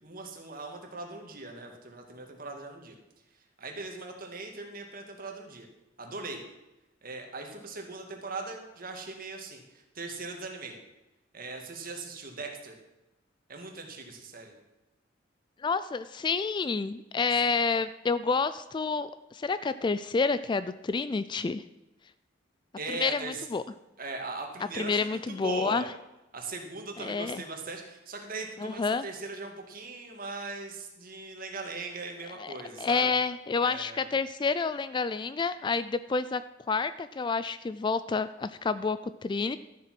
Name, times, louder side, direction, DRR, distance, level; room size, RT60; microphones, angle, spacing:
voice 1, 0.0-3.0 3.6-5.7 6.0-6.4 7.0-10.8 11.3-12.8 13.5-14.5 22.8-23.5 24.0-25.9 26.3-33.1 33.6-34.1, right 3 dB, 50° right, 3 dB, 2.0 m, -40 dB
voice 2, 15.6-21.6 23.0-23.6 24.7-25.8 27.0-27.4 28.6-29.0 32.4-36.4 36.7-39.6, left 4 dB, 25° left, 14 dB, 0.3 m, -29 dB
13.0 x 7.5 x 6.0 m, 0.97 s
head